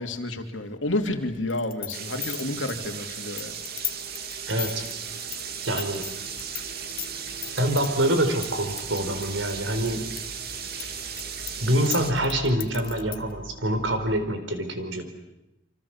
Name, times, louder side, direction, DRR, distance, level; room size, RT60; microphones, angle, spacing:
voice 1, 0.0-3.5, left 2 dB, 70° left, 5 dB, 2.9 m, -30 dB
sound 1, 1.5-6.6 6.9-7.9 8.4-10.2 10.5-13.3, left 13 dB, 50° left, 1.5 m, -35 dB
sound 2, 1.9-12.1, right 7 dB, 55° right, 2.3 m, -36 dB
sound 3, 3.5-14.0, equal, 25° right, 5.8 m, -47 dB
voice 2, 4.5-4.8 5.6-6.1 7.6-10.1 11.6-15.1, right 1 dB, 75° right, 7 dB, 4.4 m, -25 dB
27.5 x 26.0 x 7.3 m, 0.91 s
head